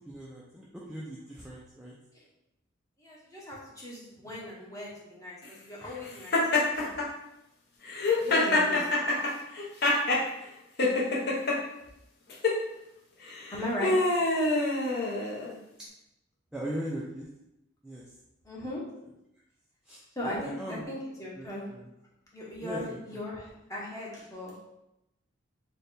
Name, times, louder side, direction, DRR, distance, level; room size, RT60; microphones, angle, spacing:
voice 1, 0.0-1.9 16.5-17.3 17.8-18.0 19.9-20.0 20.3-20.8 21.4-21.8 22.6-23.0, right 1 dB, 5° right, -6 dB, 0.3 m, -39 dB
voice 2, 3.0-6.9 8.2-8.9 13.5-13.9 18.4-18.8 20.2-21.7 22.3-24.5, left 1 dB, 15° left, -5 dB, 0.8 m, -38 dB
Laughter, 6.3-7.1 7.9-10.2 10.8-11.6 12.3-12.6 13.3-15.5, left 2 dB, 50° left, 0.7 m, -26 dB
3.3 x 2.2 x 4.1 m, 0.87 s
head